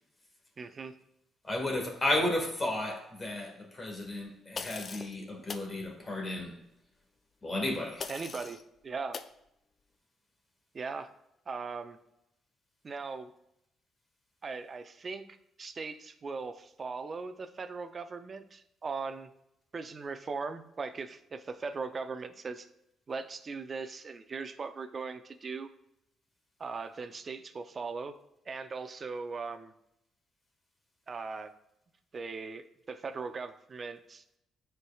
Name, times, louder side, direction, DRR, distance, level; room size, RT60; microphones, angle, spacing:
voice 1, 0.6-0.9 8.1-8.6 8.8-9.2 10.7-11.1 11.5-12.0 12.8-13.3 14.4-15.2 15.6-19.3 19.7-22.7 23.1-25.7 26.6-28.1 28.5-29.7 31.1-31.5 32.1-34.2, right 4 dB, 40° right, 0.5 m, -39 dB
voice 2, 1.4-6.6 7.4-8.1, left 1 dB, 25° left, 1.8 m, -33 dB
sound 1, 4.5-5.1 5.5-5.7 8.0-8.6 9.1-9.3, left 5 dB, 45° left, 0.4 m, -40 dB
9.6 x 4.6 x 2.3 m
cardioid pair, 90°, 0 cm